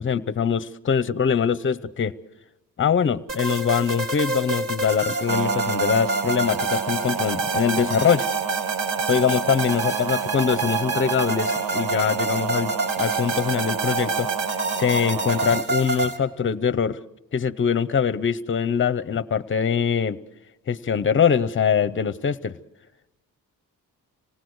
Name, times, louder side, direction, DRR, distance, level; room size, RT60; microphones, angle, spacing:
voice 1, 0.0-2.1 2.8-8.3 9.1-12.7 13.0-14.3 14.8-17.0 17.3-20.2 20.7-22.5, left 7 dB, 35° left, 16 dB, 0.7 m, -23 dB
sound 1, 3.3-16.2, right 3 dB, 50° right, 3.0 m, -28 dB
sound 2, 5.3-15.6, right 6 dB, 75° right, 0.8 m, -30 dB
27.0 x 18.0 x 7.9 m, 0.99 s
cardioid pair, 125°, 33 cm